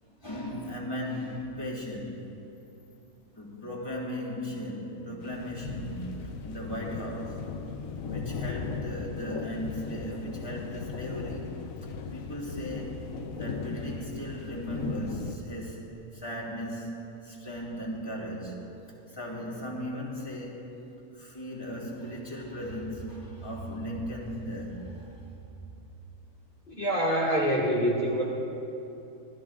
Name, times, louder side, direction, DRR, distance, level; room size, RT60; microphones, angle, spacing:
voice 1, 0.0-2.3 3.3-7.4 8.0-11.5 11.8-13.1 13.3-18.7 19.1-20.8 21.1-25.6, equal, 20° left, -3 dB, 3.2 m, -37 dB
sound 1, 5.2-15.4, left 5 dB, 85° left, 1.2 m, -37 dB
voice 2, 26.7-28.2, equal, 40° left, -7 dB, 2.5 m, -25 dB
27.5 x 19.0 x 2.5 m, 2.8 s
omnidirectional pair, 1.4 m